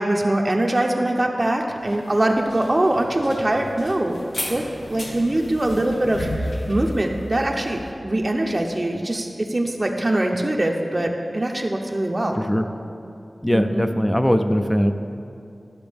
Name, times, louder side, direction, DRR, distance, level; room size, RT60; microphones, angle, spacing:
voice 1, 0.0-4.2 4.5-4.6 4.9-12.4 13.5-13.8, right 1 dB, 35° right, 2 dB, 0.6 m, -22 dB
sound 1, 1.9-7.9, left 1 dB, 70° left, 1.4 m, -33 dB
voice 2, 12.4-12.7 13.4-14.9, equal, 15° left, 7 dB, 0.4 m, -20 dB
12.5 x 5.9 x 3.5 m, 2.6 s
wide cardioid pair, 55°, 0 cm